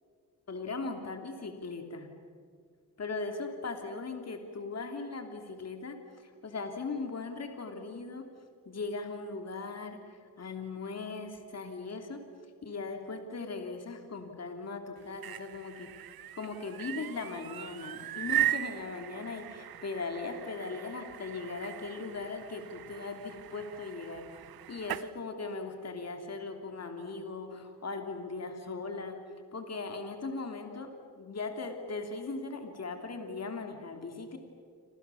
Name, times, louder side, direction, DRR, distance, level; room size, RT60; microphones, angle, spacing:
voice 1, 0.5-2.1 3.0-8.3 8.6-12.2 12.6-15.9 16.3-24.2 24.7-29.2 29.5-30.9 31.2-34.4, left 3 dB, 45° left, 4 dB, 3.1 m, -39 dB
sound 1, 15.0-25.1, right 12 dB, 80° right, 0.9 m, -38 dB
29.0 x 26.0 x 7.1 m, 2.2 s
cardioid pair, 95°, 36 cm